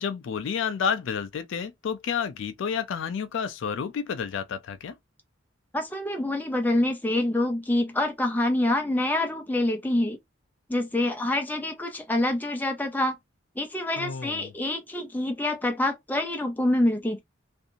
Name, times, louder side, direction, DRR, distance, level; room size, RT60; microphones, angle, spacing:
voice 1, 0.0-5.0 14.0-14.5, left 7 dB, 70° left, 0.3 m, -30 dB
voice 2, 5.7-10.2 10.7-13.2 13.6-17.2, left 1 dB, 10° left, 0.5 m, -26 dB
2.6 x 2.4 x 2.6 m
head